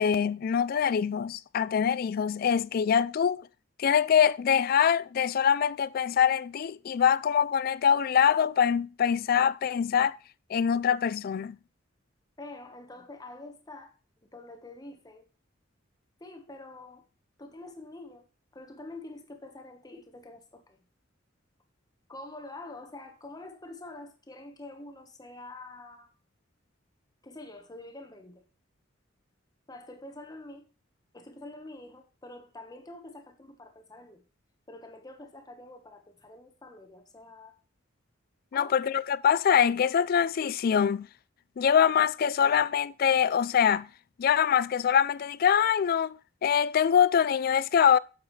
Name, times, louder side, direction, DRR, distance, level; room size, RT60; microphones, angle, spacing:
voice 1, 0.0-3.5 3.8-10.2 10.5-11.6 38.5-41.1 41.6-43.9 44.2-48.0, left 8 dB, 50° left, 0.3 m, -24 dB
voice 2, 12.4-13.9 14.3-15.3 16.2-17.0 17.4-18.3 18.5-20.8 22.1-26.1 27.2-28.4 29.7-30.7 31.1-34.2 34.7-37.5 38.5-38.7, left 2 dB, 20° left, 1.3 m, -46 dB
9.0 x 7.2 x 3.2 m
head